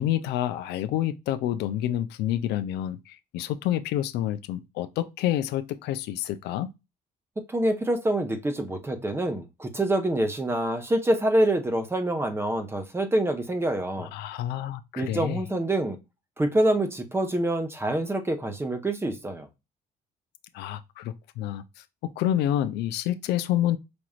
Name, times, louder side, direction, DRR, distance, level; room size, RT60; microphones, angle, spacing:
voice 1, 0.0-6.7 14.0-15.4 20.5-21.6 22.0-23.8, left 12 dB, 80° left, 0.4 m, -28 dB
voice 2, 7.5-14.1 15.0-16.0 16.4-19.5, right 1 dB, 15° right, 0.8 m, -26 dB
5.2 x 3.0 x 2.3 m
cardioid pair, 110°, 17 cm